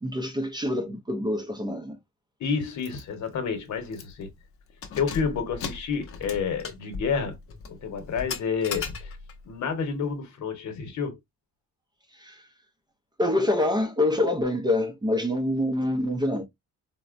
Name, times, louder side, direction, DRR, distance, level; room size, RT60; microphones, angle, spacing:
voice 1, 0.0-2.0 12.1-12.4 13.2-16.4, left 1 dB, 15° right, 0.4 m, -26 dB
voice 2, 2.4-4.3 5.0-7.4 7.7-9.2 9.4-11.2, left 6 dB, 65° left, 1.0 m, -29 dB
Keys jangling, 2.8-3.0 3.4-3.5 3.9-4.3 4.7-9.4, left 5 dB, 50° left, 0.6 m, -37 dB
4.0 x 2.1 x 2.4 m
wide cardioid pair, 165°, 30 cm